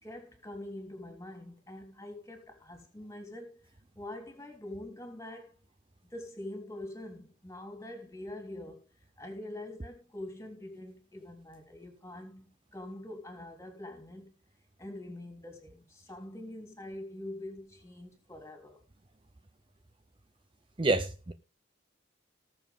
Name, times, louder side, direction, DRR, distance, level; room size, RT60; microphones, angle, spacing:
voice 1, 0.0-3.6 3.9-5.6 6.1-8.8 9.2-14.4 14.8-18.8, left 1 dB, 15° left, 3.4 m, -44 dB
voice 2, 20.8-21.3, right 2 dB, 25° right, 0.6 m, -27 dB
19.0 x 7.3 x 3.7 m
head